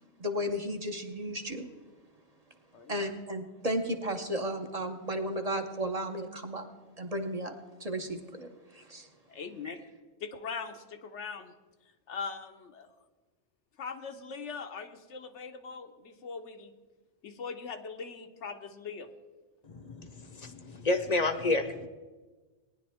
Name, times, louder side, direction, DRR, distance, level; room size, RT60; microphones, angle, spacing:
voice 1, 0.2-1.7 2.9-6.7 7.0-7.5 7.8-9.1, equal, 35° right, 4 dB, 0.9 m, -34 dB
voice 2, 9.3-9.8 10.2-11.5 12.1-12.9 13.8-16.7 17.2-19.1, left 5 dB, 80° left, 6 dB, 1.2 m, -41 dB
voice 3, 19.6-21.9, left 2 dB, 40° left, 9 dB, 0.8 m, -30 dB
18.5 x 10.5 x 3.5 m, 1.3 s
omnidirectional pair, 1.2 m